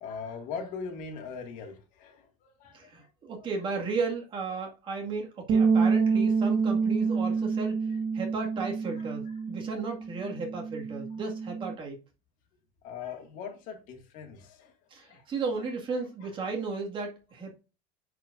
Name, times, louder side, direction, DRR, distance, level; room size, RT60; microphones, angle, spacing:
voice 1, 0.0-2.3 2.6-3.1 9.3-9.4 12.8-14.7 15.0-15.2, left 5 dB, 50° left, 2.0 m, -40 dB
voice 2, 2.7-7.9 8.1-12.0 14.9-17.6, right 4 dB, 30° right, 2.0 m, -34 dB
sound 1, 5.5-11.7, right 5 dB, 50° right, 1.5 m, -27 dB
9.7 x 4.7 x 2.6 m
cardioid pair, 155°, 17 cm